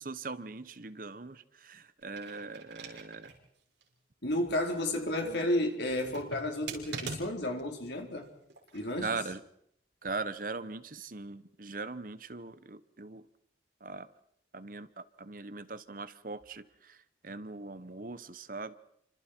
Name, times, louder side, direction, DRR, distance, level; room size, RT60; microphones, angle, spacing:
voice 1, 0.0-3.3 5.2-5.4 9.0-9.4 10.0-13.3 13.8-14.1 14.5-18.7, right 3 dB, 50° right, 1.0 m, -40 dB
sound 1, 2.0-3.4 3.8-3.9 5.8-7.6 8.5-9.0, right 3 dB, 75° right, 5.6 m, -42 dB
voice 2, 4.2-8.3 8.7-9.2, left 1 dB, 70° left, 3.9 m, -32 dB
29.0 x 25.5 x 4.5 m
head